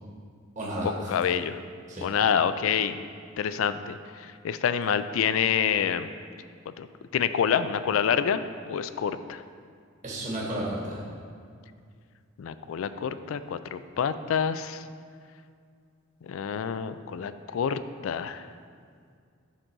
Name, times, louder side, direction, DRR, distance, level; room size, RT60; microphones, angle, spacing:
voice 1, 0.5-1.1 1.9-2.0 10.0-11.0, right 1 dB, 40° right, -5 dB, 1.5 m, -32 dB
voice 2, 1.1-1.6 2.0-3.0 3.4-6.1 6.8-6.9 7.1-8.4 8.7-9.4 12.4-14.8 16.2-18.4, left 7 dB, 75° left, 12 dB, 0.3 m, -27 dB
8.0 x 3.9 x 6.2 m, 2.2 s
head